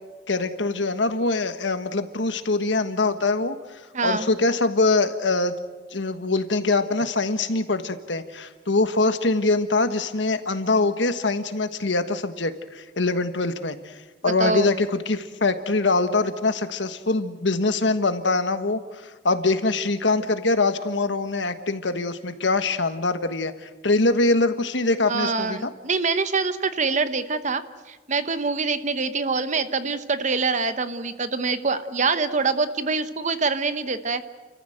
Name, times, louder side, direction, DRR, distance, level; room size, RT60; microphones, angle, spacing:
voice 1, 0.3-5.5 5.9-25.7, left 3 dB, 75° left, 10 dB, 1.4 m, -23 dB
voice 2, 3.9-4.3 14.2-14.7 25.0-27.6 27.9-34.2, right 4 dB, 40° right, 11 dB, 1.0 m, -25 dB
30.0 x 14.5 x 7.9 m, 1.3 s
head